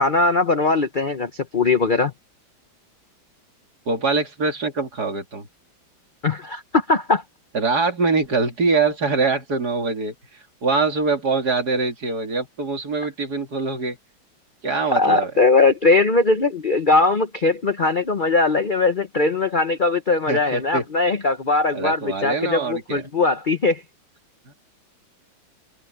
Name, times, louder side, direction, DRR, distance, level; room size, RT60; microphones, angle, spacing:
voice 1, 0.0-2.1 6.2-7.2 14.9-23.8, left 3 dB, 40° left, 0.7 m, -20 dB
voice 2, 3.9-5.5 7.5-14.0 14.6-15.3 20.3-20.8 21.7-23.0 24.5-24.6, right 4 dB, 50° right, 3.3 m, -23 dB
omnidirectional pair, 2.1 m